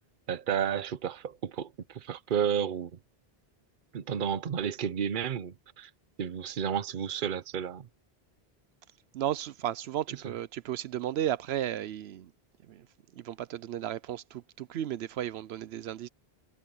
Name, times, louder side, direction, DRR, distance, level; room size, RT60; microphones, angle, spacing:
voice 1, 0.3-2.9 3.9-5.9 6.2-7.9 10.2-10.3, right 8 dB, 55° right, 0.9 m, -32 dB
voice 2, 9.1-12.3 12.7-12.9 13.1-16.1, right 11 dB, 80° right, 0.8 m, -34 dB
omnidirectional pair, 1.1 m